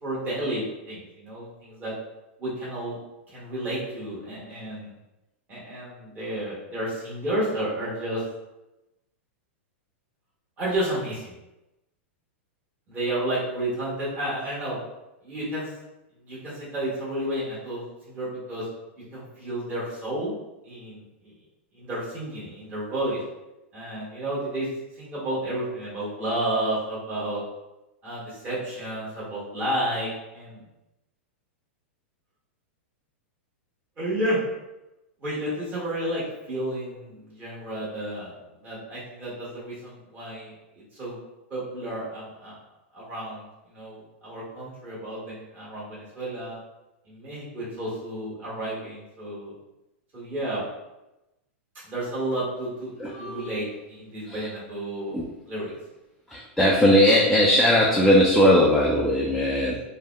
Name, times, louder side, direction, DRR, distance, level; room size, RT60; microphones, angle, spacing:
voice 1, 0.0-1.9 2.4-3.0 3.3-4.9 5.5-8.2 10.6-11.3 12.9-14.8 15.2-15.7 16.2-18.7 19.0-20.4 20.6-21.3 21.7-23.2 23.7-24.7 25.0-27.4 28.0-30.6 34.0-34.4 35.2-38.3 38.6-41.2 41.5-42.6 42.9-46.6 47.1-49.5 50.1-50.6 51.8-52.9 53.2-55.2 55.5-55.7, right 1 dB, 25° right, -8 dB, 1.3 m, -31 dB
voice 2, 53.0-53.6 54.3-54.5 55.1-55.2 56.3-59.8, equal, ahead, -4 dB, 0.3 m, -19 dB
3.3 x 2.1 x 2.2 m, 0.97 s
hypercardioid pair, 135°, 7 cm